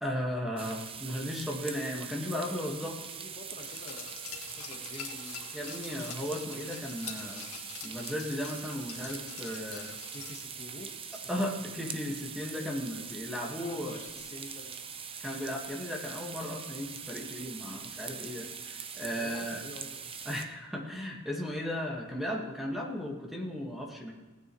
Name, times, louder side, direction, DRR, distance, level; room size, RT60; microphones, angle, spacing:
voice 1, 0.0-3.0 5.5-7.5 7.8-10.0 11.3-14.0 15.2-19.6 20.2-24.1, left 1 dB, ahead, -1 dB, 1.6 m, -36 dB
sound 1, 0.6-20.4, right 6 dB, 25° right, 0.6 m, -42 dB
voice 2, 2.5-6.0 10.1-11.5 13.5-14.8 19.2-20.1, left 1 dB, 30° left, 2 dB, 1.3 m, -48 dB
Glass, 3.6-10.6 10.9-11.0, left 7 dB, 85° left, 1.9 m, -46 dB
17.0 x 9.5 x 3.1 m, 1.3 s
head